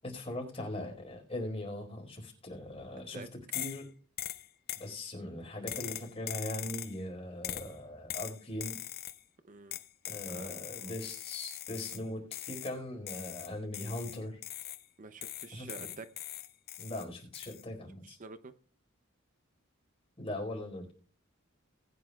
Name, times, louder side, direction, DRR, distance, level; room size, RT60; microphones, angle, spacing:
voice 1, 0.0-3.2 3.5-3.9 4.7-8.8 10.0-14.4 15.5-15.9 16.8-18.2 20.2-20.9, left 1 dB, 30° left, 1 dB, 4.6 m, -40 dB
sound 1, 3.5-3.9 4.2-4.9 5.7-7.0 7.4-7.7 8.1-9.2 9.7-12.0 12.3-12.8 13.1-14.9 15.2-17.0 17.3-17.6, left 12 dB, 50° left, 0.7 m, -41 dB
voice 2, 9.4-9.8 10.3-10.6 10.8-10.9 15.0-16.1 18.0-18.5, right 3 dB, 40° right, 11 dB, 0.6 m, -47 dB
20.0 x 9.8 x 2.3 m, 0.40 s
head